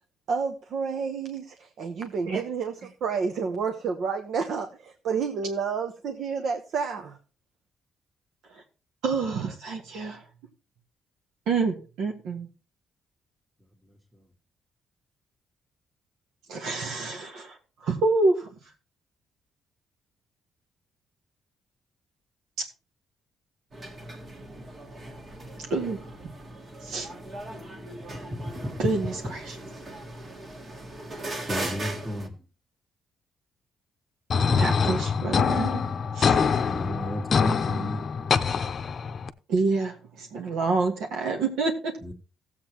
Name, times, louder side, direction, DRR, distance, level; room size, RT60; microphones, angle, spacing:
voice 1, 0.3-7.2, right 5 dB, 70° right, 1.0 m, -30 dB
voice 2, 9.0-10.2 11.5-12.5 16.5-18.5 22.6-22.7 25.7-26.1 26.8-27.1 28.8-29.6 34.5-35.9 36.1-36.4 39.5-41.9, right 3 dB, 85° right, 1.7 m, -28 dB
sound 1, 23.7-32.3, right 1 dB, 40° right, 1.9 m, -39 dB
voice 3, 28.1-28.7 31.5-32.3 36.7-38.0 42.0-42.1, left 1 dB, 5° right, 1.5 m, -32 dB
sound 2, 34.3-39.3, left 6 dB, 50° left, 0.7 m, -24 dB
16.0 x 7.8 x 3.0 m
cardioid pair, 90°, 0 cm